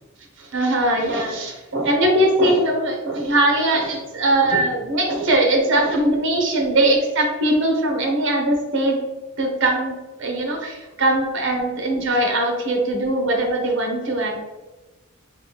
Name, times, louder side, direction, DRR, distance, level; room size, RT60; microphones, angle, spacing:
voice 1, 0.4-9.0 9.4-14.4, right 1 dB, 60° right, 2 dB, 0.8 m, -20 dB
3.7 x 2.4 x 3.9 m, 1.1 s
head